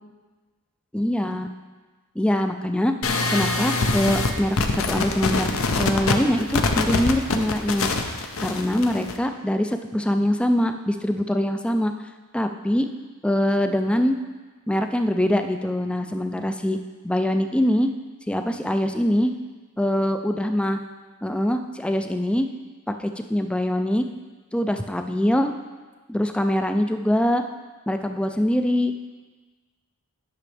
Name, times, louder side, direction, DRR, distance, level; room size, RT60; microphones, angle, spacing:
voice 1, 0.9-1.5 2.2-2.9 3.3-5.5 5.8-7.9 8.4-11.9 12.3-12.9 13.2-14.2 14.7-16.8 17.0-17.9 18.3-19.3 19.8-20.8 21.2-22.5 23.0-24.1 24.5-25.5 26.1-27.4 27.9-28.9, left 1 dB, 5° left, 6 dB, 0.3 m, -23 dB
sound 1, 3.0-9.2, left 3 dB, 65° left, 0.7 m, -24 dB
10.5 x 6.1 x 3.3 m, 1.3 s
head